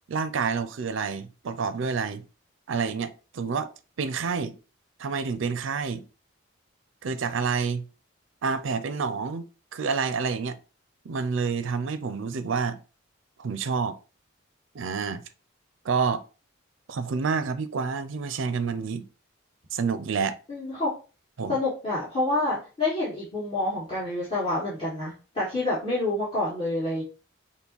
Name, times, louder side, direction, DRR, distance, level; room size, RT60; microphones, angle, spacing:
voice 1, 0.1-2.2 2.7-3.7 4.0-4.5 5.0-6.0 7.0-7.8 8.4-9.4 9.7-10.6 11.0-12.8 13.4-14.0 14.7-15.2 15.8-16.2 16.9-19.0 19.7-20.4 21.4-21.5, right 5 dB, 70° right, 0.4 m, -28 dB
voice 2, 20.5-20.9 21.5-27.0, left 2 dB, 25° left, 1.7 m, -28 dB
5.8 x 2.1 x 4.0 m
head